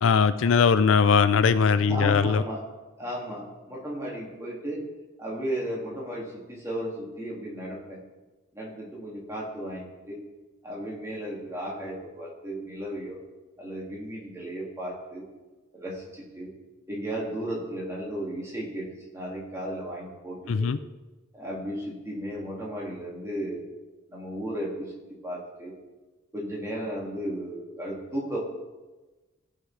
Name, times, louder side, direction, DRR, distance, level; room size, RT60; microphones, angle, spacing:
voice 1, 0.0-2.4 20.5-20.8, left 5 dB, 75° left, 13 dB, 0.4 m, -20 dB
voice 2, 1.8-2.6 3.0-4.8 5.2-8.0 8.5-10.2 10.6-13.2 13.6-15.3 15.7-16.5 16.9-20.7 21.3-23.6 24.1-24.9 25.2-25.7 26.3-28.4, right 1 dB, 15° right, -4 dB, 2.1 m, -34 dB
15.5 x 5.8 x 3.3 m, 1.2 s
head